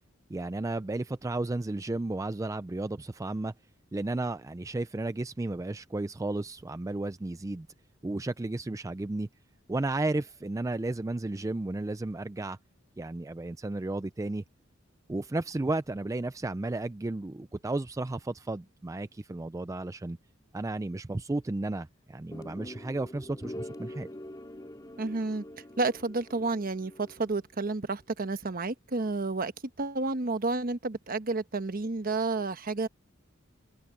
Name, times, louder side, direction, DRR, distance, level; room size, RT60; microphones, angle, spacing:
voice 1, 0.3-3.5 3.9-7.7 8.0-9.3 9.7-12.6 13.0-14.4 15.1-20.2 20.5-24.1, right 2 dB, 15° right, 0.4 m, -33 dB
sound 1, 22.3-27.4, left 1 dB, 20° left, 2.2 m, -44 dB
voice 2, 25.0-25.4 25.8-29.5 29.8-32.9, right 3 dB, 45° right, 1.1 m, -30 dB
head